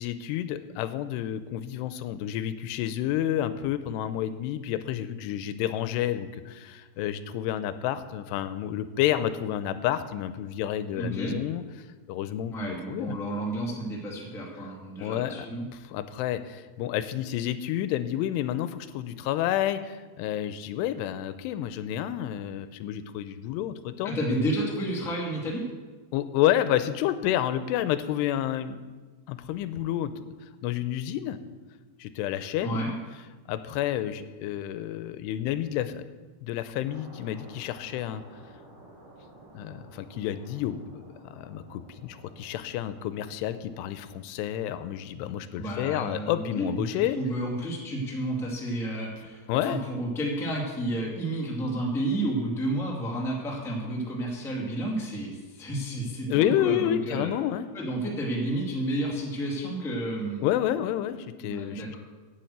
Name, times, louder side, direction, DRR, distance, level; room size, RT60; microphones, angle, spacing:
voice 1, 0.0-11.6 12.1-13.2 15.0-15.5 15.9-24.2 26.1-28.8 29.3-30.2 30.6-31.4 32.0-32.8 33.5-36.0 36.4-38.2 39.5-47.2 49.5-49.8 56.3-57.7 60.4-62.0, left 12 dB, 90° left, 12 dB, 2.7 m, -29 dB
voice 2, 11.0-11.4 12.5-15.6 24.0-25.6 32.6-32.9 45.6-57.3 57.7-60.4 61.4-62.0, right 1 dB, ahead, -3 dB, 1.1 m, -31 dB
sound 1, 36.8-43.8, right 1 dB, 55° right, 3.7 m, -52 dB
8.9 x 8.5 x 7.9 m, 1.3 s
omnidirectional pair, 4.8 m